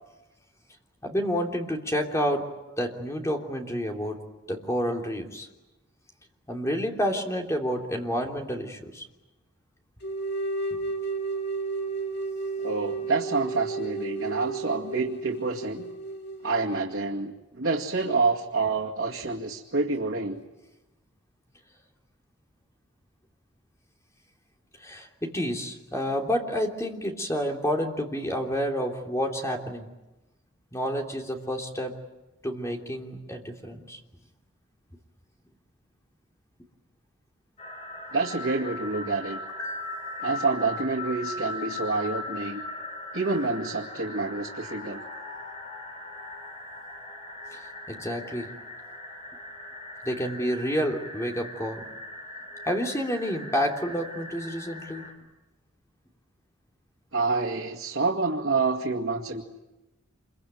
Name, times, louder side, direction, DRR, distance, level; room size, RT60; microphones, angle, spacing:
voice 1, 1.0-2.5 2.8-4.2 4.5-5.5 6.5-9.0 24.8-29.9 30.7-31.9 32.4-34.0 39.6-40.1 47.5-48.5 50.0-51.8 52.7-55.1, equal, 15° left, 2 dB, 3.1 m, -29 dB
sound 1, 10.0-16.8, right 3 dB, 55° left, 2.3 m, -32 dB
voice 2, 12.6-15.9 16.4-20.4 38.1-39.4 40.2-42.6 43.1-45.0 57.1-59.4, right 3 dB, 90° right, -2 dB, 2.3 m, -28 dB
sound 2, 37.6-55.1, left 2 dB, 30° left, 5.0 m, -39 dB
27.0 x 23.5 x 9.2 m, 1.0 s
head